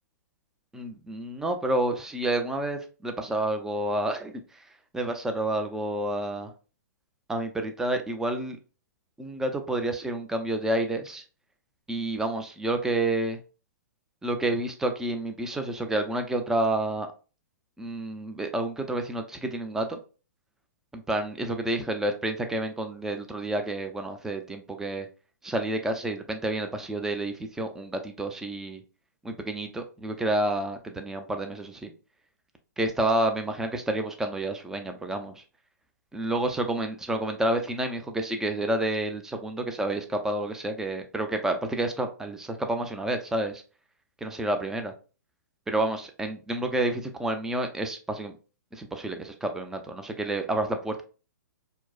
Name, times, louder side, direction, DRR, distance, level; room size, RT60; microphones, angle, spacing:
voice 1, 0.7-4.4 4.9-6.5 7.3-8.6 9.2-11.2 11.9-13.4 14.2-17.1 17.8-20.0 20.9-25.1 25.4-28.8 29.2-31.9 32.8-35.4 36.1-43.6 44.2-44.9 45.7-48.3 48.7-51.0, right 1 dB, 5° right, 6 dB, 0.4 m, -29 dB
4.5 x 2.0 x 2.3 m, 0.35 s
hypercardioid pair, 140°, 10 cm